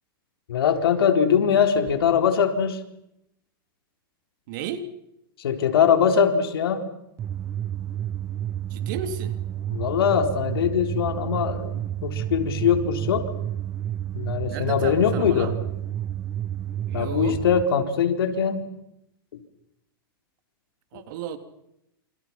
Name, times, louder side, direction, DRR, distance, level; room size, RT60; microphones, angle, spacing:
voice 1, 0.5-2.8 5.4-6.8 9.7-13.3 14.1-15.5 16.9-18.7 20.9-21.0, left 7 dB, 85° left, 6 dB, 3.9 m, -22 dB
voice 2, 4.5-4.9 8.7-9.4 14.5-15.5 16.9-17.4 20.9-21.4, right 8 dB, 60° right, 8 dB, 3.2 m, -34 dB
sound 1, 7.2-17.6, right 11 dB, 25° right, 1.2 m, -30 dB
28.5 x 27.0 x 5.9 m, 0.82 s
supercardioid pair, 140°, 12 cm